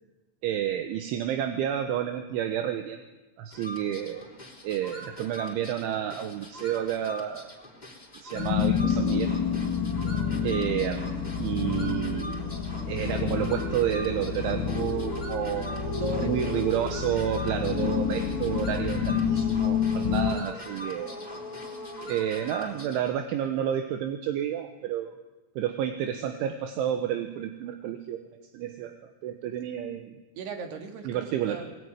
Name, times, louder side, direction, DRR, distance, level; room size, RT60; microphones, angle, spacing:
voice 1, 0.4-3.1 3.4-4.3 4.6-7.5 8.2-9.4 10.4-11.1 11.4-12.5 12.9-21.2 22.1-25.2 25.6-28.2 28.5-29.0 29.2-30.2 31.1-31.6, right 10 dB, 80° right, 6 dB, 3.6 m, -30 dB
sound 1, 3.5-23.2, left 1 dB, 10° left, 3.0 m, -41 dB
sound 2, 8.3-20.4, left 7 dB, 75° left, 4.6 m, -28 dB
voice 2, 16.0-16.7 30.3-31.7, right 4 dB, 60° right, 5 dB, 4.5 m, -37 dB
22.5 x 21.0 x 9.8 m, 1.1 s
omnidirectional pair, 5.6 m